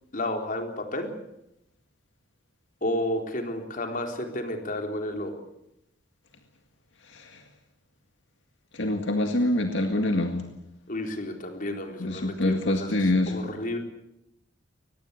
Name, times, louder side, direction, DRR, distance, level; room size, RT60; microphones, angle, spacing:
voice 1, 0.1-1.1 2.8-5.3 10.9-13.8, left 1 dB, 45° left, 4 dB, 4.1 m, -31 dB
voice 2, 7.1-7.4 8.7-10.4 12.0-13.4, left 1 dB, 75° left, 5 dB, 2.0 m, -25 dB
23.5 x 20.5 x 8.4 m, 0.83 s
head